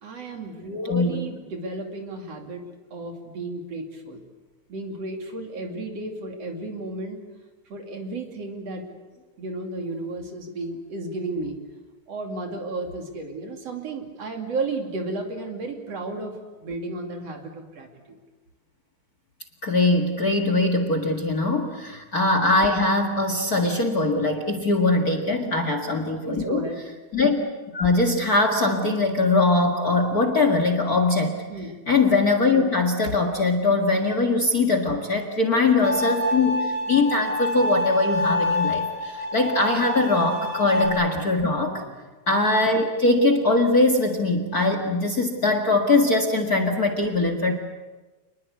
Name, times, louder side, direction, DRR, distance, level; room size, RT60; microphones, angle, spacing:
voice 1, 0.0-4.2 4.7-7.2 7.7-8.9 9.4-11.6 12.1-18.2 21.8-21.9 25.4-25.6 26.2-26.8 31.5-31.7 40.4-40.5 41.6-41.9, right 2 dB, 55° right, 3 dB, 3.7 m, -33 dB
voice 2, 19.6-26.7 27.1-27.5 27.7-31.4 31.9-41.8 42.3-47.5, left 2 dB, 35° left, 5 dB, 1.9 m, -21 dB
Bowed string instrument, 35.8-40.9, left 1 dB, 35° right, 5.6 m, -27 dB
27.0 x 21.0 x 8.4 m, 1.3 s
omnidirectional pair, 3.4 m